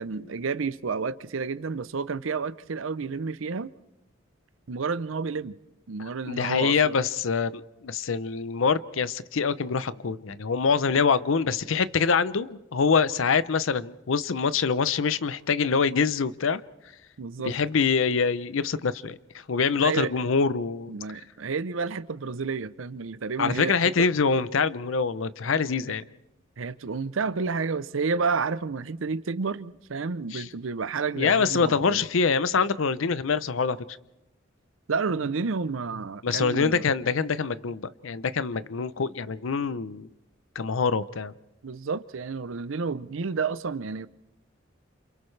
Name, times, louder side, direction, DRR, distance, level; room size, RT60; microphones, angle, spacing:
voice 1, 0.0-3.7 4.7-5.6 5.9-7.0 17.2-17.5 19.8-20.1 20.9-24.1 26.6-32.0 34.9-36.9 41.6-44.1, right 4 dB, 75° right, 0.6 m, -30 dB
voice 2, 6.3-16.6 17.5-19.2 19.5-20.9 23.4-26.0 30.3-30.5 31.2-33.8 36.2-40.1 40.6-41.3, left 5 dB, 75° left, 0.6 m, -25 dB
29.5 x 27.5 x 3.3 m
head